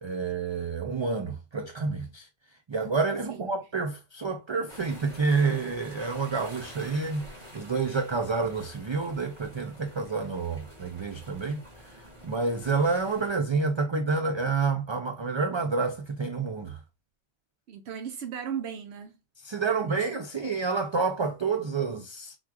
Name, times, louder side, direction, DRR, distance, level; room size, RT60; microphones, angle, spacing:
voice 1, 0.0-2.3 2.7-7.3 7.5-16.8 19.4-22.4, right 4 dB, 45° right, 0.3 m, -29 dB
voice 2, 3.3-3.6 17.7-19.2 19.8-20.1, right 8 dB, 85° right, 0.9 m, -37 dB
Mar sobre las piedras escollera, 4.7-13.4, equal, 30° right, 1.4 m, -48 dB
3.7 x 2.4 x 4.6 m
omnidirectional pair, 1.1 m